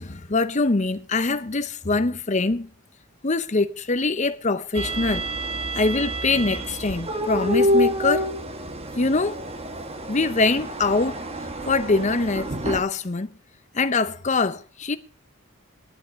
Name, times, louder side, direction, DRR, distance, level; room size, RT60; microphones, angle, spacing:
voice 1, 0.0-2.7 3.2-5.3 5.8-8.3 9.0-9.4 10.1-11.2 11.7-13.3 13.7-15.0, left 3 dB, 35° left, 0.7 m, -23 dB
sound 1, 4.7-12.8, equal, 30° right, 1.2 m, -28 dB
11.0 x 11.0 x 5.2 m
head